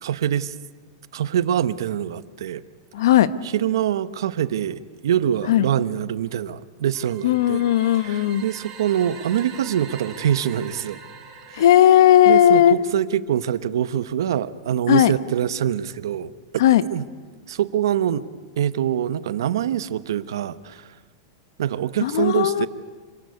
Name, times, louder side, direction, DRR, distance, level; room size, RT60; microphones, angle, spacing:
voice 1, 0.0-0.5 1.1-2.6 3.4-7.7 7.9-11.0 11.5-11.6 12.2-16.6 16.9-17.1 17.5-18.2 18.6-20.9 21.6-22.7, right 10 dB, 85° right, 15 dB, 1.0 m, -24 dB
voice 2, 2.9-3.3 5.5-5.6 7.2-8.4 11.6-12.8 14.9-15.1 16.6-16.8 22.0-22.7, left 11 dB, 70° left, 15 dB, 1.0 m, -16 dB
sound 1, 6.9-12.9, right 6 dB, 25° right, 5.4 m, -43 dB
26.0 x 16.0 x 9.7 m, 1.5 s
supercardioid pair, 160°, 2 cm